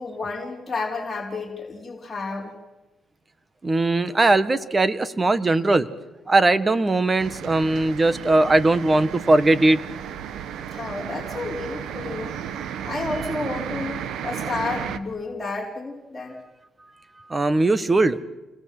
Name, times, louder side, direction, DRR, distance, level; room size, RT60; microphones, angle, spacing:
voice 1, 0.0-2.6 10.7-12.4 12.8-16.4, left 3 dB, 20° left, -3 dB, 4.7 m, -31 dB
voice 2, 3.6-5.9 6.3-9.8 17.3-18.2, right 2 dB, 25° right, 13 dB, 1.6 m, -19 dB
sound 1, 7.2-15.0, right 9 dB, 75° right, 1.6 m, -33 dB
29.5 x 22.5 x 8.0 m, 1.1 s
cardioid pair, 90°, 0 cm